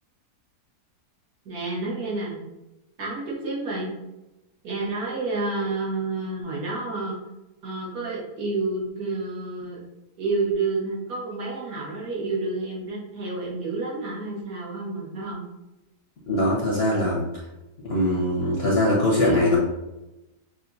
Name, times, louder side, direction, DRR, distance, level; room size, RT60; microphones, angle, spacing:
voice 1, 1.5-2.4 3.0-3.9 4.6-7.2 7.6-9.8 10.2-15.4, right 3 dB, 65° right, -5 dB, 1.8 m, -29 dB
voice 2, 16.3-17.3 17.8-19.6, left 1 dB, 55° left, -4 dB, 0.7 m, -21 dB
6.1 x 2.5 x 2.7 m, 0.99 s
omnidirectional pair, 1.7 m